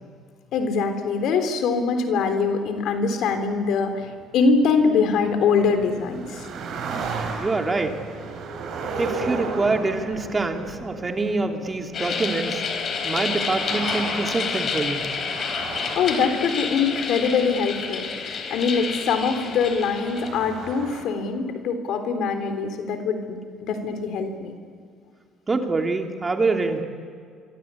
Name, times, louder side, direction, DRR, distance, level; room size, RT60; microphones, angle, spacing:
voice 1, 0.5-6.5 16.0-24.5, left 5 dB, 70° left, 7 dB, 3.6 m, -23 dB
sound 1, 3.3-21.0, right 4 dB, 65° right, 5.8 m, -36 dB
voice 2, 7.4-8.0 9.0-12.6 13.0-15.0 25.5-26.8, right 3 dB, 25° right, 4 dB, 2.8 m, -25 dB
sound 2, 11.9-20.3, left 5 dB, 50° left, 4.1 m, -29 dB
26.0 x 24.0 x 8.4 m, 2.1 s
supercardioid pair, 90°, 0 cm